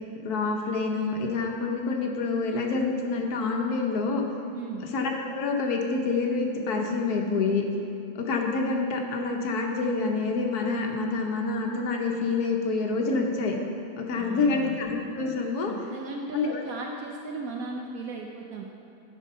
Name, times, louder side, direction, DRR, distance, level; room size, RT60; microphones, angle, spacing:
voice 1, 0.1-4.2 4.9-7.6 8.2-13.5 14.0-15.7 16.3-16.6, left 4 dB, 80° left, 1 dB, 1.4 m, -27 dB
voice 2, 14.1-14.8 15.7-18.6, right 3 dB, 75° right, 1 dB, 1.0 m, -37 dB
11.5 x 4.5 x 5.4 m, 2.8 s
omnidirectional pair, 1.6 m